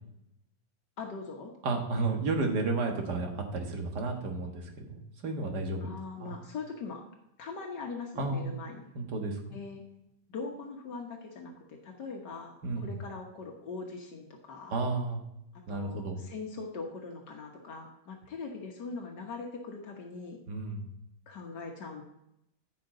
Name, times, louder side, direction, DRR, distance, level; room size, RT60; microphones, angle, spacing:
voice 1, 1.0-1.5 5.8-7.0 7.4-8.9 9.5-9.8 10.3-14.8 15.7-20.4 21.3-22.0, left 4 dB, 70° left, 1 dB, 1.8 m, -41 dB
voice 2, 1.6-5.9 6.2-6.4 8.1-8.5 9.0-9.4 12.6-13.0 14.7-15.2 15.7-16.2 20.5-20.8, right 3 dB, 65° right, 3 dB, 2.1 m, -32 dB
15.0 x 5.8 x 3.9 m, 0.82 s
omnidirectional pair, 1.9 m